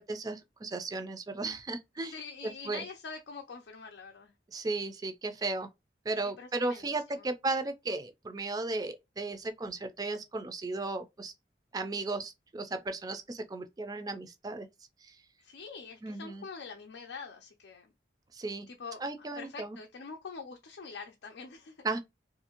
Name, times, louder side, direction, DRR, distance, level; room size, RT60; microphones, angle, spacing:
voice 1, 0.0-2.1 2.7-2.8 4.5-5.7 6.1-11.3 11.7-14.7 15.0-15.2 16.0-16.4 18.3-18.7 19.0-19.8 21.8-22.0, right 3 dB, 20° right, 0.3 m, -35 dB
voice 2, 2.0-4.3 6.4-7.3 15.4-17.9 18.7-21.9, left 5 dB, 85° left, 0.5 m, -45 dB
2.7 x 2.5 x 2.8 m
head